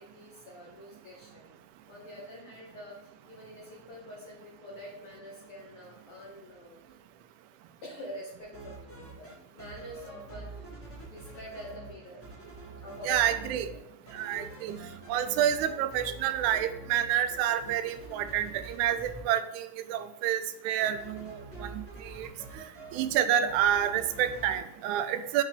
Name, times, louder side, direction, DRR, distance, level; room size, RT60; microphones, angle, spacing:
voice 1, 0.0-1.5 1.9-6.8 7.8-10.7 11.0-12.2 12.8-13.8, equal, 65° left, -4 dB, 1.4 m, -46 dB
sound 1, 8.4-9.3 9.6-11.9 12.2-13.8 14.0-19.2 20.8-23.1 23.4-24.6, right 2 dB, 10° left, 0.6 m, -46 dB
voice 2, 13.1-13.7 14.1-14.8 15.1-22.3 22.5-22.6 22.9-25.4, right 10 dB, 80° right, 9 dB, 1.8 m, -29 dB
5.6 x 3.8 x 4.9 m, 0.84 s
omnidirectional pair, 3.7 m